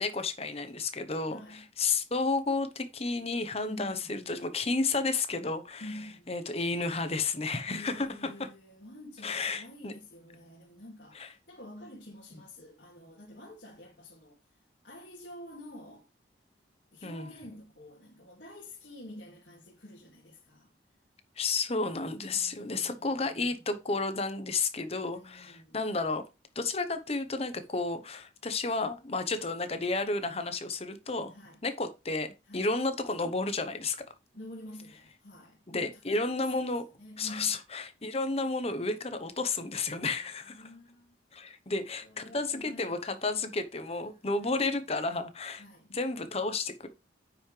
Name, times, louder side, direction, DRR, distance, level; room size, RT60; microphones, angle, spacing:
voice 1, 0.0-5.9 6.3-8.1 9.2-9.9 11.1-11.3 17.0-17.3 21.4-26.2 26.5-31.3 31.6-34.0 35.7-36.8 37.2-40.6 41.3-45.6 45.9-46.9, left 3 dB, 35° left, 1.0 m, -32 dB
voice 2, 1.3-1.7 3.6-4.5 5.8-6.3 7.7-14.4 14.8-16.1 16.9-20.7 22.3-23.6 24.9-25.8 29.3-29.5 31.3-31.6 32.5-32.7 34.3-37.6 40.0-41.2 41.7-43.0 43.8-44.3 45.6-45.9, left 1 dB, 60° left, 2.2 m, -48 dB
9.4 x 5.8 x 3.3 m
head